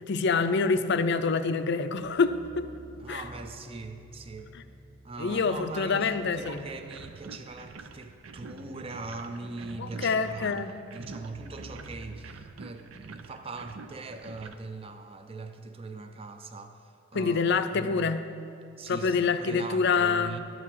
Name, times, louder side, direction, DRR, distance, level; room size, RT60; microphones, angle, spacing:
voice 1, 0.1-2.6 3.1-3.2 5.2-6.6 9.8-10.7 17.1-18.2 18.9-20.4, left 4 dB, 55° left, 10 dB, 0.5 m, -26 dB
sound 1, 1.9-8.1 8.4-11.9, right 1 dB, 45° right, 1.0 m, -50 dB
voice 2, 3.0-4.5 5.0-10.7 10.9-18.1 18.8-20.4, right 3 dB, 25° right, 7 dB, 0.5 m, -41 dB
sound 2, 6.4-14.6, right 4 dB, 75° right, 0.5 m, -47 dB
12.0 x 4.7 x 7.3 m, 2.7 s
head